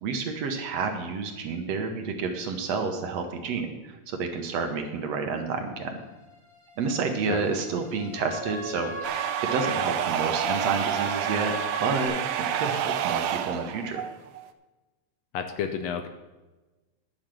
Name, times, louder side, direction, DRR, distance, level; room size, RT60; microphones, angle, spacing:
voice 1, 0.0-6.0 6.8-14.0, right 4 dB, 65° right, 5 dB, 1.9 m, -30 dB
sound 1, 6.3-12.1, left 1 dB, 15° left, 4.4 m, -37 dB
sound 2, 9.0-14.5, right 10 dB, 90° right, 2.1 m, -29 dB
voice 2, 15.3-16.1, left 7 dB, 75° left, 7 dB, 1.7 m, -30 dB
10.5 x 6.4 x 7.4 m, 1.2 s
omnidirectional pair, 3.4 m